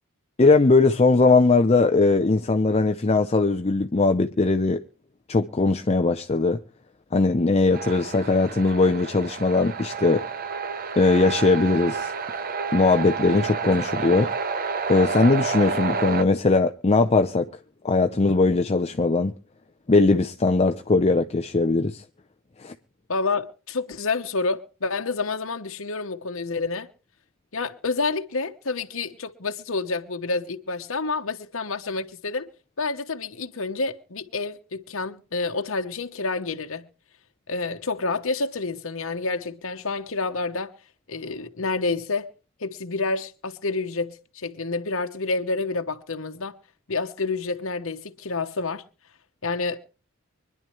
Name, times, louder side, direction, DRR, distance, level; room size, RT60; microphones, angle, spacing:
voice 1, 0.4-4.8 5.3-6.6 7.1-10.2 11.0-12.1 12.7-14.3 14.9-17.5 17.8-19.3 19.9-22.0 22.6-22.8, left 3 dB, 30° left, 0.6 m, -20 dB
sound 1, 7.7-16.2, right 5 dB, 45° right, 0.9 m, -30 dB
voice 2, 23.1-26.9 27.5-32.5 32.8-36.9 37.5-40.7 41.1-42.3 42.6-46.5 46.9-48.8 49.4-49.8, left 3 dB, 70° left, 1.1 m, -28 dB
25.0 x 10.5 x 3.2 m
head